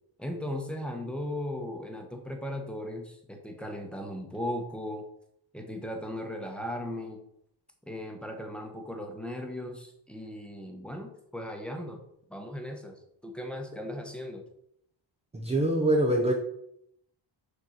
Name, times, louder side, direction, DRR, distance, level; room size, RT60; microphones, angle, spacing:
voice 1, 0.2-5.0 5.5-7.2 7.9-12.0 12.3-14.4, left 1 dB, ahead, 3 dB, 1.0 m, -37 dB
voice 2, 15.3-16.3, right 1 dB, 15° right, 1 dB, 0.7 m, -24 dB
6.7 x 4.4 x 6.5 m, 0.74 s
wide cardioid pair, 175°, 45 cm